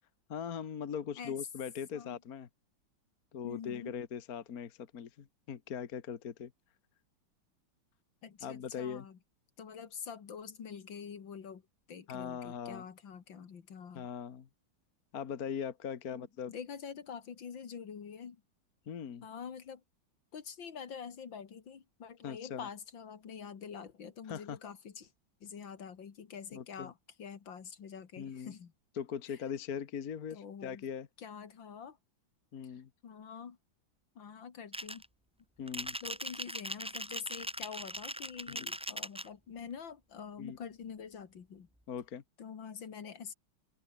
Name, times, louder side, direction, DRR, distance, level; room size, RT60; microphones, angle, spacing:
voice 1, 0.3-2.5 3.3-6.5 8.4-9.1 12.1-12.8 13.9-14.5 15.1-16.5 18.9-19.2 22.2-22.7 24.3-24.6 26.5-26.9 28.2-28.5 29.0-31.1 32.5-32.9 35.6-35.9 38.5-38.7 40.4-40.6 41.9-42.2, left 7 dB, 50° left, 1.7 m, -40 dB
voice 2, 3.4-4.0 8.2-9.2 9.6-11.6 11.9-14.1 16.1-18.4 19.2-19.8 20.3-25.1 25.4-28.7 29.3-29.4 30.3-30.9 31.2-32.0 32.6-33.6 34.2-35.0 36.0-41.7 42.4-43.3, left 7 dB, 70° left, 2.6 m, -46 dB
sound 1, 34.7-35.0 35.7-39.3, equal, 5° right, 3.0 m, -40 dB
omnidirectional pair, 2.1 m